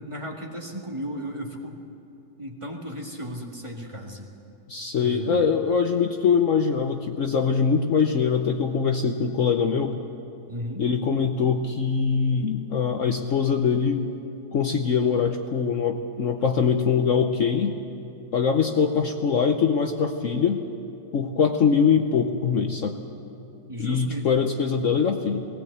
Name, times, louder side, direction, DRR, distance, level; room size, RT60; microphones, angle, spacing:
voice 1, 0.0-1.8 2.4-4.3 5.0-5.4 10.5-10.8 23.7-24.4, equal, 20° right, 0 dB, 1.9 m, -35 dB
voice 2, 4.7-10.0 10.8-14.0 14.5-17.8 18.3-20.6 21.1-23.0 23.8-25.5, left 6 dB, 55° left, 5 dB, 1.1 m, -23 dB
19.5 x 17.5 x 8.1 m, 3.0 s
omnidirectional pair, 1.8 m